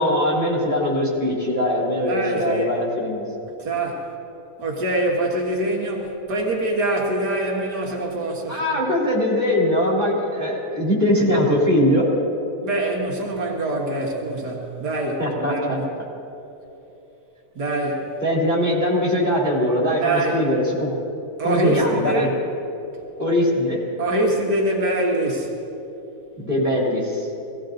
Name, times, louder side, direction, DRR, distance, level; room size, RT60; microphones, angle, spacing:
voice 1, 0.0-3.2 8.5-12.1 15.2-15.8 18.2-20.9 21.4-22.3 23.2-23.8 26.4-27.3, left 1 dB, 10° left, -5 dB, 3.1 m, -21 dB
voice 2, 2.1-2.7 3.6-4.1 4.6-8.8 12.6-15.9 17.6-18.1 20.0-20.4 21.4-22.3 24.0-25.5, right 1 dB, 75° right, -2 dB, 2.3 m, -24 dB
19.5 x 15.5 x 3.9 m, 2.9 s
omnidirectional pair, 1.8 m